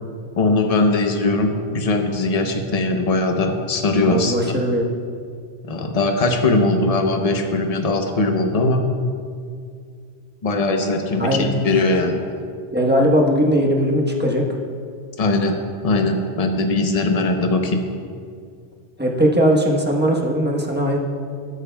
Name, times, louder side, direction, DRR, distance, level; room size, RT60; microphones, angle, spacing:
voice 1, 0.4-4.3 5.6-8.9 10.4-12.2 15.2-15.6 15.8-17.8, left 2 dB, 35° left, 4 dB, 0.8 m, -20 dB
voice 2, 4.0-4.8 11.2-11.5 12.7-14.6 19.0-21.0, equal, 10° right, -1 dB, 1.0 m, -19 dB
18.0 x 8.5 x 2.3 m, 2.2 s
omnidirectional pair, 1.2 m